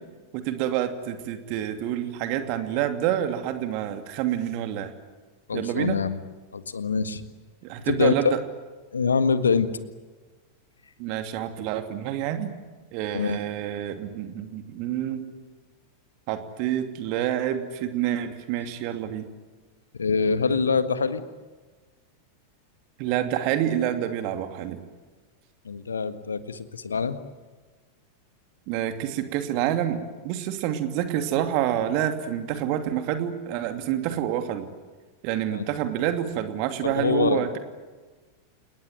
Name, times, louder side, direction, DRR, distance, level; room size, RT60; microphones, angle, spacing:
voice 1, 0.3-4.9 5.5-6.0 7.6-8.4 11.0-12.5 12.9-15.2 16.3-19.3 23.0-24.8 28.7-34.7 35.2-37.6, right 11 dB, 45° right, 7 dB, 2.7 m, -28 dB
voice 2, 5.5-6.2 6.5-7.2 7.9-8.4 8.9-9.8 13.1-13.4 20.0-21.2 25.7-27.2 35.5-35.7 36.8-37.6, left 5 dB, 70° left, 11 dB, 1.7 m, -24 dB
29.5 x 19.0 x 9.6 m, 1.3 s
figure-of-eight pair, 90°, 0 cm